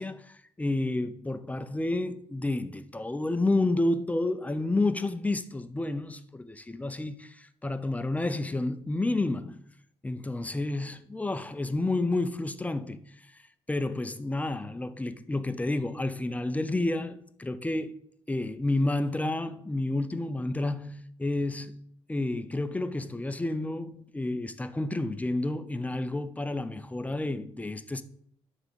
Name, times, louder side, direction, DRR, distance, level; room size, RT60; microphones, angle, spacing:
voice 1, 0.0-9.6 10.0-13.1 13.7-17.9 18.3-21.8 22.1-28.0, left 2 dB, 15° left, 0.6 m, -30 dB
9.1 x 3.7 x 6.9 m
cardioid pair, 85°, 11 cm